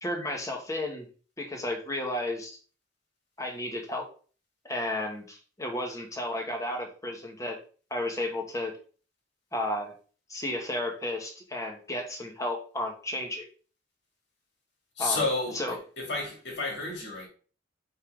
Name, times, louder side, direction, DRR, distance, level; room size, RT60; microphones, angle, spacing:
voice 1, 0.0-1.1 1.4-2.6 3.4-4.0 4.6-7.6 7.9-8.7 9.5-9.9 10.3-13.5 15.0-15.2 15.5-15.7, left 1 dB, 20° left, 1.4 m, -33 dB
voice 2, 15.0-17.3, left 2 dB, 70° left, 2.4 m, -31 dB
5.5 x 3.8 x 5.0 m
head